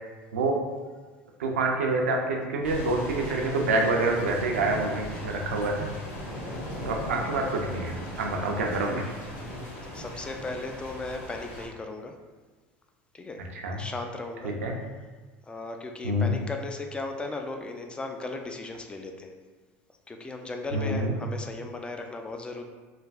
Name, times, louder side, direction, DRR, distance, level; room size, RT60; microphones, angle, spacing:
voice 1, 1.4-5.9 6.8-9.1 13.5-13.8 14.4-14.8 16.0-16.3 20.7-21.1, right 2 dB, 85° right, 1 dB, 0.5 m, -27 dB
sound 1, 2.6-11.7, left 1 dB, 70° left, 1.1 m, -38 dB
voice 2, 5.3-5.6 6.2-6.6 9.8-12.1 13.1-13.4 13.8-14.6 15.4-19.3 20.1-22.6, left 3 dB, 15° left, 4 dB, 0.4 m, -37 dB
3.3 x 2.5 x 2.4 m, 1.4 s
hypercardioid pair, 85°, 7 cm